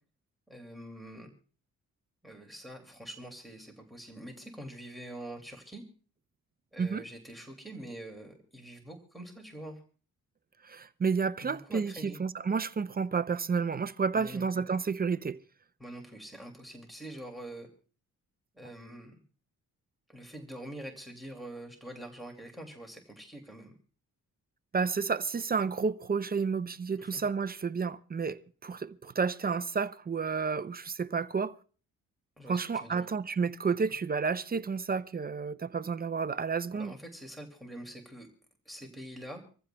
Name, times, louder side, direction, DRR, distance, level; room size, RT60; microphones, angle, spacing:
voice 1, 0.5-1.3 2.2-5.8 6.7-9.8 11.4-12.2 14.1-14.5 15.8-17.7 18.5-19.2 20.1-23.7 27.0-27.2 32.4-33.1 36.7-38.3 38.7-39.4, right 1 dB, ahead, 2.4 m, -45 dB
voice 2, 10.6-15.4 24.7-31.6 32.5-36.9, right 5 dB, 30° right, 0.5 m, -31 dB
26.5 x 15.0 x 2.2 m
cardioid pair, 105°, 33 cm